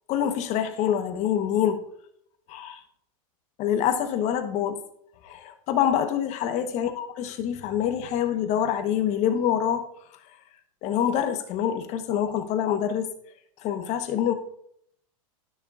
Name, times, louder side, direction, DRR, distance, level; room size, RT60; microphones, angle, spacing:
voice 1, 0.1-1.8 2.5-2.8 3.6-4.7 5.2-9.8 10.8-13.1 13.6-14.3, left 9 dB, 40° left, 8 dB, 1.1 m, -26 dB
13.0 x 6.2 x 2.5 m, 0.69 s
hypercardioid pair, 130°, 18 cm